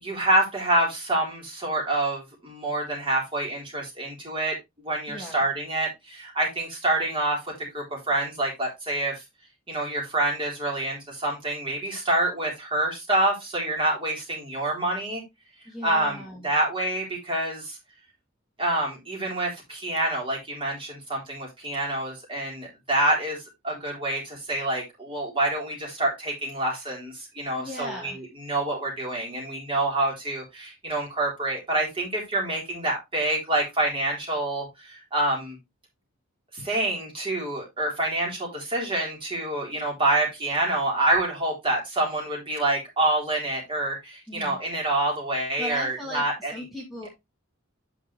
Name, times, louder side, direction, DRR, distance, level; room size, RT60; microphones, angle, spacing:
voice 1, 0.0-9.2 9.7-15.2 15.8-17.8 18.6-28.1 28.5-35.6 36.5-46.5, right 1 dB, 25° right, -2 dB, 3.9 m, -27 dB
voice 2, 5.1-5.4 15.6-16.5 27.6-28.2 44.3-44.6 45.6-47.1, equal, ahead, -4 dB, 2.1 m, -38 dB
9.6 x 5.2 x 3.2 m, 0.21 s
head